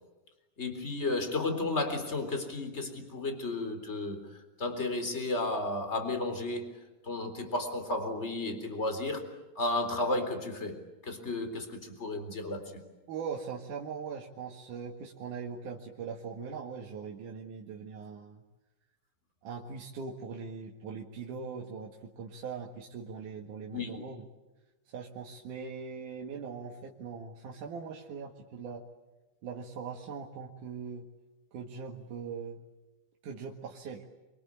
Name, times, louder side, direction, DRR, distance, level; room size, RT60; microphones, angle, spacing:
voice 1, 0.6-4.2 4.6-6.7 7.0-9.3 9.6-12.8 23.7-24.0, left 2 dB, 20° left, 7 dB, 3.9 m, -33 dB
voice 2, 13.1-18.4 19.4-24.2 24.9-28.8 29.4-31.1 31.5-32.6 33.2-34.0, right 6 dB, 80° right, 0 dB, 3.3 m, -41 dB
29.0 x 23.5 x 8.7 m, 1.1 s
omnidirectional pair, 3.6 m